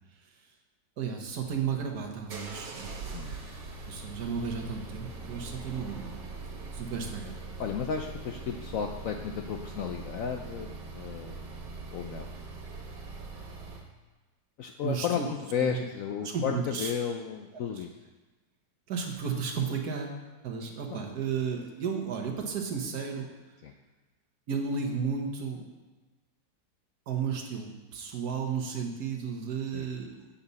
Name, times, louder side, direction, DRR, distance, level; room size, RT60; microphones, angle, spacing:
voice 1, 1.0-2.9 3.9-6.1 6.7-7.4 14.8-15.3 15.6-15.8 16.2-16.9 17.7-17.8 18.9-23.3 24.5-25.7 27.1-30.3, right 6 dB, 65° right, 1 dB, 1.5 m, -33 dB
sound 1, 1.4-13.9, right 3 dB, 80° right, 1.7 m, -42 dB
voice 2, 7.6-11.5 11.9-12.3 14.6-17.9 20.9-21.0 23.6-23.7 29.7-29.9, left 8 dB, 70° left, 4 dB, 0.8 m, -33 dB
8.5 x 6.9 x 4.1 m, 1.2 s
omnidirectional pair, 1.8 m